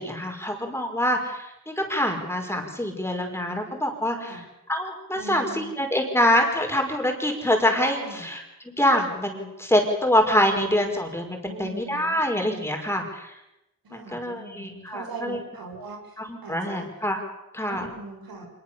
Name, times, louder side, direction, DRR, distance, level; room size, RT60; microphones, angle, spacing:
voice 1, 0.0-4.3 4.7-13.3 13.9-15.4 16.2-17.2 17.5-17.8, left 1 dB, 5° left, 2 dB, 5.2 m, -25 dB
voice 2, 5.1-5.8 8.0-8.3 11.4-12.2 13.8-16.9 17.7-18.5, right 3 dB, 85° right, 3 dB, 5.9 m, -40 dB
25.5 x 22.0 x 7.1 m, 0.91 s
wide cardioid pair, 95°, 35 cm